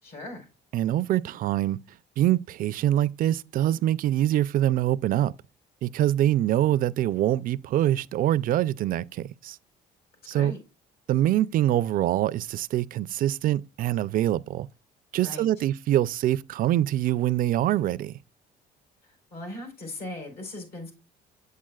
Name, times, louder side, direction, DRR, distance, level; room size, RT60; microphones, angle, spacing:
voice 1, 0.0-0.5 10.3-10.6 15.2-15.5 19.3-20.9, left 1 dB, 65° left, 4.6 m, -38 dB
voice 2, 0.7-1.8 2.2-5.3 5.8-9.6 10.3-10.5 11.1-14.7 15.1-18.1, right 13 dB, 55° right, 0.4 m, -24 dB
8.2 x 7.5 x 2.3 m
cardioid pair, 110°, 17 cm